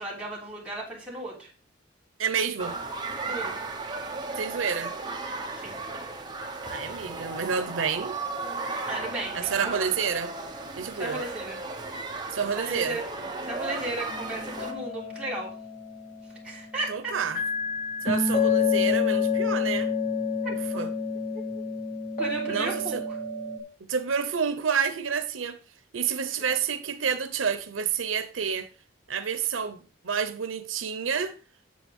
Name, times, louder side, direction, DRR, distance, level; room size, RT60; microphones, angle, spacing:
voice 1, 0.0-1.5 3.3-3.6 5.6-5.8 8.9-9.9 11.0-11.6 12.6-13.0 13.4-15.5 16.4-17.1 20.4-20.9 21.3-21.4 22.2-23.2 26.4-26.5, right 2 dB, 5° right, 3.9 m, -35 dB
voice 2, 2.2-2.8 4.4-4.9 6.7-8.2 9.3-10.3 10.8-11.2 12.3-13.0 16.9-17.4 18.0-19.9 20.5-20.9 22.5-23.0 23.9-25.6 25.9-28.7 29.1-31.3, right 6 dB, 90° right, 0.8 m, -29 dB
sound 1, 2.6-14.7, right 3 dB, 25° right, 1.2 m, -35 dB
sound 2, 14.1-16.9 17.4-23.6, left 5 dB, 45° left, 2.6 m, -28 dB
8.8 x 7.4 x 3.6 m
head